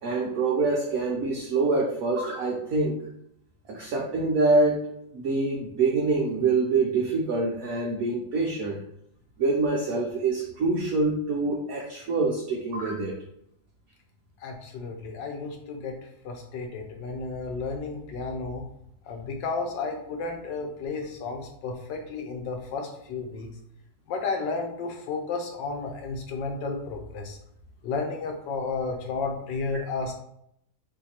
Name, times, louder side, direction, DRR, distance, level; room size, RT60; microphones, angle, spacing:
voice 1, 0.0-3.0 3.7-8.8 9.4-13.2, right 3 dB, 65° right, -2 dB, 1.0 m, -25 dB
voice 2, 14.4-16.0 16.2-18.6 19.1-23.5 24.1-27.4 27.8-30.1, left 4 dB, 75° left, 3 dB, 1.5 m, -32 dB
4.0 x 2.8 x 4.2 m, 0.75 s
omnidirectional pair, 2.0 m